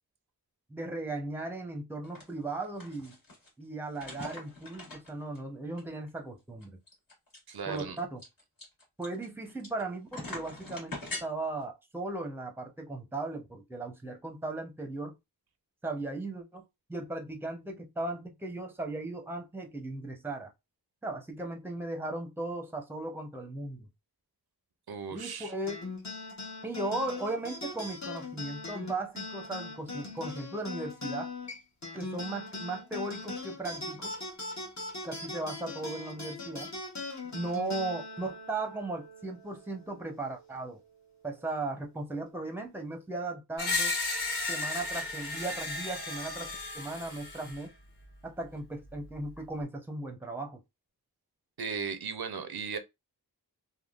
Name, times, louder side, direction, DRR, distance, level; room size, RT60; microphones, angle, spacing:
voice 1, 0.7-3.2 3.6-6.8 7.7-8.2 9.0-15.1 15.8-16.6 16.9-20.5 21.0-23.9 25.1-25.8 26.6-31.3 31.9-34.2 35.0-36.7 37.3-40.8 41.2-43.9 44.5-47.7 48.2-50.6, right 2 dB, 5° right, 0.6 m, -37 dB
sound 1, 2.0-2.2 2.5-3.5 3.9-5.4 5.8-5.9 6.1-6.2 6.6-9.8 10.1-11.2, left 2 dB, 60° left, 1.6 m, -42 dB
voice 2, 7.5-8.0 24.9-25.5 51.6-52.8, right 6 dB, 75° right, 0.6 m, -36 dB
sound 2, 25.7-40.4, left 3 dB, 45° left, 0.9 m, -40 dB
Screech, 43.6-47.6, left 3 dB, 85° left, 0.9 m, -34 dB
3.5 x 2.2 x 2.3 m
wide cardioid pair, 75°, 38 cm